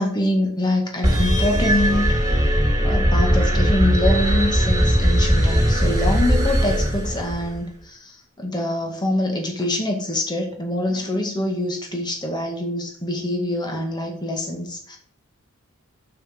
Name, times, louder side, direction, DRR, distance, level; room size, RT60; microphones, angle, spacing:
voice 1, 0.0-2.1 2.8-15.0, left 1 dB, 20° left, 2 dB, 1.9 m, -25 dB
sound 1, 1.0-7.6, equal, 20° right, 3.3 m, -19 dB
7.2 x 6.3 x 6.0 m, 0.64 s
head